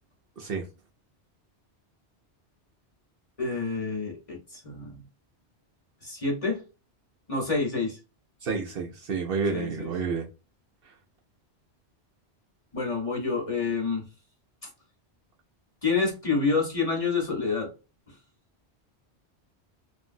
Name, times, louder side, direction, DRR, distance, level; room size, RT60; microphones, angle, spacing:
voice 1, 3.4-5.0 6.0-6.6 7.3-8.0 9.5-9.9 12.7-14.0 14.6-14.7 15.8-17.7, left 4 dB, 30° left, 1.0 m, -28 dB
voice 2, 8.4-10.3, right 5 dB, 60° right, 0.8 m, -29 dB
3.0 x 2.5 x 2.6 m
omnidirectional pair, 1.2 m